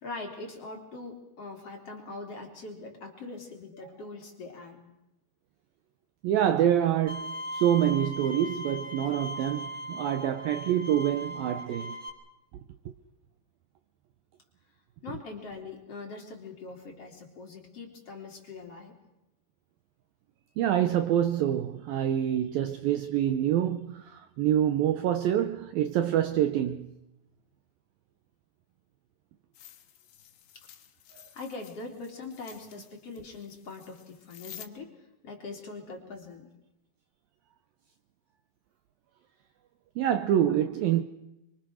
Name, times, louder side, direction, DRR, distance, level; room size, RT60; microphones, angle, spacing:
voice 1, 0.0-4.8 6.8-6.9 15.0-18.9 30.5-30.7 31.3-35.0 35.2-36.5, left 3 dB, 35° left, 3.9 m, -42 dB
voice 2, 6.2-12.0 12.9-13.0 20.6-26.9 40.0-41.0, right 10 dB, 75° right, 2.3 m, -26 dB
Bowed string instrument, 7.1-12.1, equal, 25° right, 3.4 m, -39 dB
sound 1, 29.5-34.7, left 11 dB, 65° left, 3.2 m, -52 dB
25.5 x 24.5 x 6.4 m
omnidirectional pair, 5.0 m